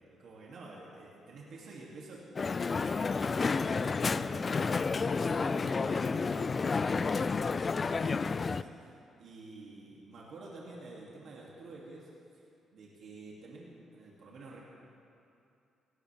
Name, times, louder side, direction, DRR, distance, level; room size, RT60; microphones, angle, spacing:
voice 1, 0.0-2.2 2.7-12.1 12.7-13.7 13.9-14.6, right 2 dB, 65° right, -5 dB, 2.7 m, -49 dB
Crowd, 2.4-8.6, left 4 dB, 35° left, 0.3 m, -30 dB
18.0 x 17.0 x 3.5 m, 2.7 s
cardioid pair, 90°, 0 cm